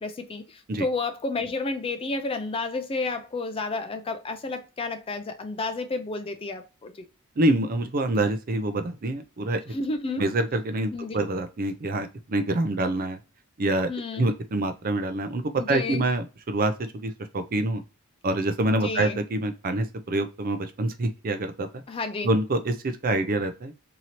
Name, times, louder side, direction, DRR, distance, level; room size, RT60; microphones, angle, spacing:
voice 1, 0.0-7.1 9.7-10.3 10.9-11.2 13.9-14.3 15.6-16.1 18.6-19.2 21.9-22.3, left 3 dB, 25° left, 0.4 m, -31 dB
voice 2, 7.4-9.7 10.2-13.2 13.6-15.4 15.7-17.8 18.2-21.7 22.2-23.7, right 2 dB, 40° right, 0.5 m, -26 dB
2.8 x 2.7 x 2.8 m
head